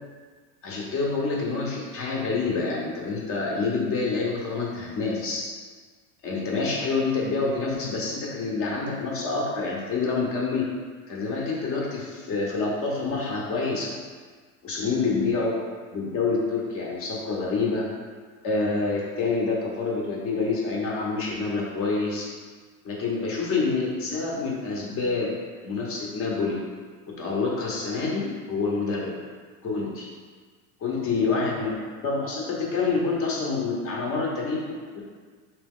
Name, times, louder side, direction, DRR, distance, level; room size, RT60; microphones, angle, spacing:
voice 1, 0.6-5.5 6.2-10.6 11.1-13.9 14.6-15.5 15.9-17.9 18.4-22.3 22.8-25.3 25.6-26.6 27.2-29.1 29.6-30.1 30.8-31.7 32.0-35.0, left 4 dB, 30° left, -3 dB, 0.8 m, -27 dB
3.9 x 2.9 x 3.6 m, 1.5 s
supercardioid pair, 145°, 48 cm